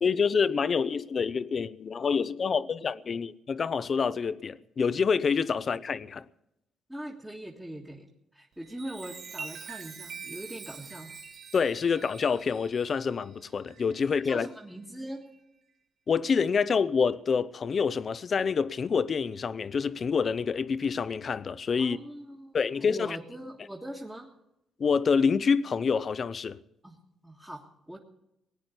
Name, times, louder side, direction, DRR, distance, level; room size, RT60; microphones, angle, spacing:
voice 1, 0.0-6.2 11.5-14.5 16.1-22.0 22.5-23.2 24.8-26.6, left 5 dB, 45° left, 0.7 m, -27 dB
voice 2, 6.9-11.1 14.2-15.3 21.8-24.3 26.8-27.0 27.2-28.0, right 1 dB, 5° right, 1.6 m, -42 dB
Chime, 8.5-14.5 15.1-15.4, right 6 dB, 55° right, 1.4 m, -45 dB
18.0 x 9.6 x 8.2 m
cardioid pair, 90°, 0 cm